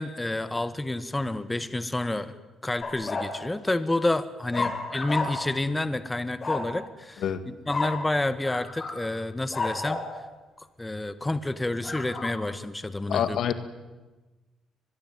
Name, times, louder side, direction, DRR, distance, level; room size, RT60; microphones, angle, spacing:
voice 1, 0.0-2.3 2.6-10.0 10.8-13.4, left 2 dB, 15° left, 13 dB, 1.4 m, -29 dB
sound 1, 2.8-3.3 4.5-5.6 6.4-6.7 7.7-8.0 8.4-9.0 9.5-10.1 11.8-12.3, left 3 dB, 35° left, 6.5 m, -31 dB
voice 2, 13.1-13.5, left 9 dB, 75° left, 11 dB, 1.9 m, -26 dB
24.0 x 21.0 x 9.2 m, 1.2 s
cardioid pair, 90°, 0 cm